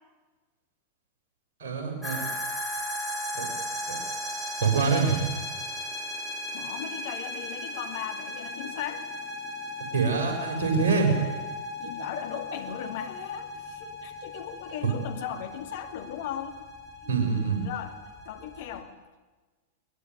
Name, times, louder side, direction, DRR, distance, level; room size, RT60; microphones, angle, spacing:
voice 1, 1.6-2.2 3.3-3.5 3.9-4.0 4.6-5.2 9.9-11.1 14.8-14.9 17.1-17.6, right 5 dB, 55° right, 1 dB, 6.9 m, -25 dB
sound 1, 2.0-18.8, left 1 dB, 5° left, 5.9 m, -37 dB
voice 2, 6.5-9.0 11.8-16.6 17.0-18.0 18.3-18.9, left 10 dB, 55° left, 6 dB, 2.2 m, -37 dB
22.5 x 19.5 x 10.0 m, 1.3 s
figure-of-eight pair, 90°, 0 cm